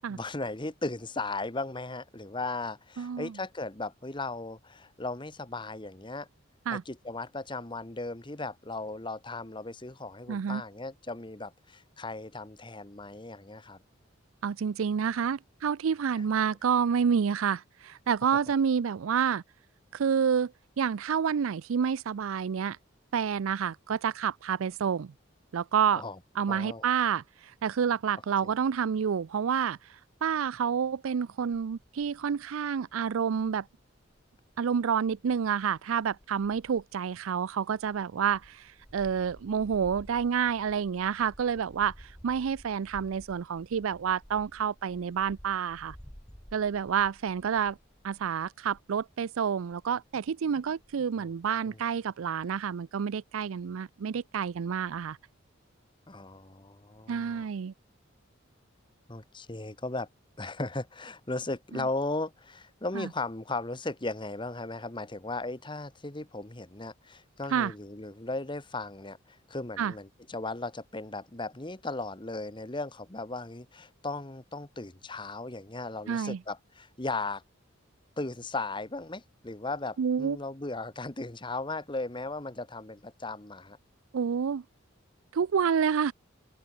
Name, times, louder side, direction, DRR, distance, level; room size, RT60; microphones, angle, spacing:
voice 1, 0.1-6.3 6.7-13.8 25.9-26.2 26.5-26.9 28.4-28.5 51.2-51.3 51.6-51.8 56.1-57.5 59.1-60.1 60.4-77.4 78.2-83.8, left 2 dB, 25° left, 1.3 m, -37 dB
voice 2, 3.0-3.3 6.7-6.8 10.3-10.6 14.4-19.4 19.9-22.8 23.1-25.1 25.5-26.0 26.4-29.8 30.2-33.7 34.6-46.0 46.5-47.8 48.0-55.2 57.1-57.7 61.7-61.8 62.9-63.1 67.5-67.7 69.8-69.9 76.1-76.4 80.0-80.4 84.1-84.6 85.3-86.1, right 7 dB, 90° right, 0.4 m, -29 dB
sound 1, 31.5-32.2 32.7-32.8 33.1-49.1 49.4-50.3 50.6-51.0, equal, 5° left, 0.9 m, -54 dB
open air
head